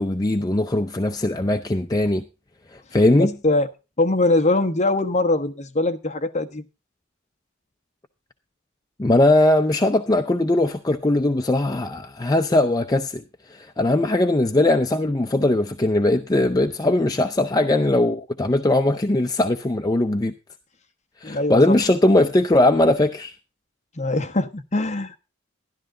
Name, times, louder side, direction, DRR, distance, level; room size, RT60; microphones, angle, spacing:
voice 1, 0.0-2.2 2.7-3.3 9.0-13.2 13.5-20.3 21.2-23.3, left 1 dB, 20° left, 0.6 m, -20 dB
voice 2, 3.2-3.7 4.0-6.6 21.2-21.7 23.9-25.2, left 2 dB, 35° left, 1.1 m, -22 dB
13.0 x 11.5 x 3.8 m
head